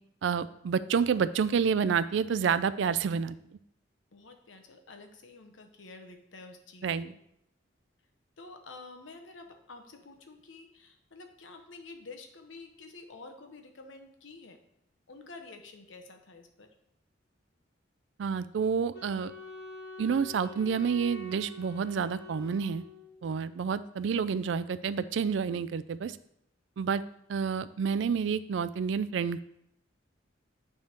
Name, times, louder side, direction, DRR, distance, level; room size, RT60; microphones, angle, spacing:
voice 1, 0.2-3.4 6.8-7.1 18.2-19.3 20.0-22.8 23.2-26.2 26.8-27.0 27.3-29.4, right 6 dB, 70° right, 15 dB, 0.3 m, -29 dB
voice 2, 4.1-7.2 8.4-14.6 15.1-16.7, left 3 dB, 85° left, 5 dB, 1.0 m, -49 dB
Wind instrument woodwind instrument, 18.9-23.4, equal, 65° left, 1.2 m, -45 dB
9.1 x 3.6 x 4.5 m, 0.73 s
head